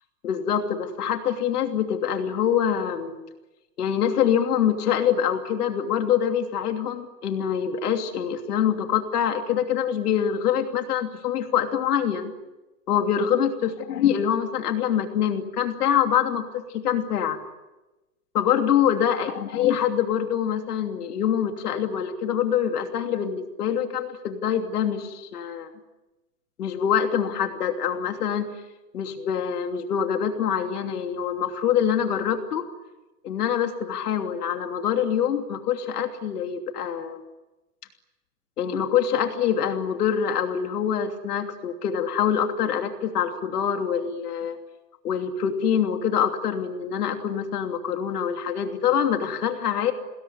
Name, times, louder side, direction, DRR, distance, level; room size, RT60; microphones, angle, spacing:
voice 1, 0.2-3.2 3.8-12.3 12.9-17.4 18.3-25.7 26.6-28.5 28.9-32.6 33.2-37.2 38.6-44.6 45.0-49.9, left 8 dB, 75° left, 5 dB, 3.0 m, -25 dB
29.0 x 21.5 x 9.7 m, 1.1 s
supercardioid pair, 165°, 46 cm